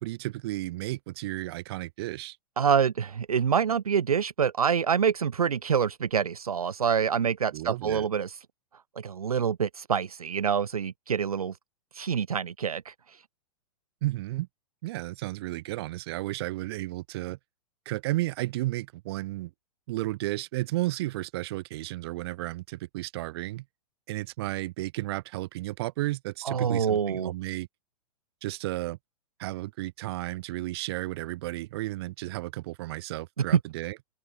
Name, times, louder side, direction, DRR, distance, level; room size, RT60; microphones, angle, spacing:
voice 1, 0.0-2.4 7.5-8.1 14.0-14.5 14.8-17.4 17.8-19.5 19.9-23.6 24.1-27.7 28.4-29.0 29.4-34.0, right 18 dB, 40° right, 1.3 m, -33 dB
voice 2, 2.6-8.4 9.0-11.5 11.9-13.2 26.4-27.3 33.4-33.6, right 7 dB, 70° right, 0.6 m, -26 dB
open air
figure-of-eight pair, 105°, 19 cm